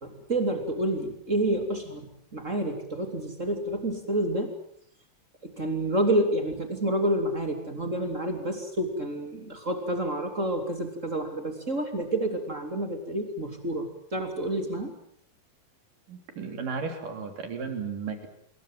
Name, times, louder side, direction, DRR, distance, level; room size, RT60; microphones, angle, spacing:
voice 1, 0.0-4.5 5.4-14.9, right 1 dB, 20° right, 5 dB, 3.3 m, -29 dB
voice 2, 16.1-18.3, right 5 dB, 65° right, 6 dB, 4.9 m, -34 dB
28.0 x 22.0 x 7.6 m, 0.66 s
omnidirectional pair, 4.1 m